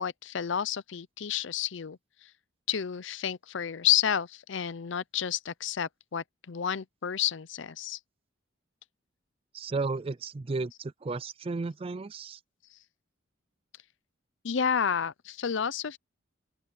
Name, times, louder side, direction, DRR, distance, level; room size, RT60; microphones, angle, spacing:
voice 1, 0.0-2.3 2.7-8.0 14.4-16.0, left 9 dB, 65° left, 0.6 m, -30 dB
voice 2, 9.5-12.4, right 3 dB, 30° right, 0.4 m, -33 dB
open air
head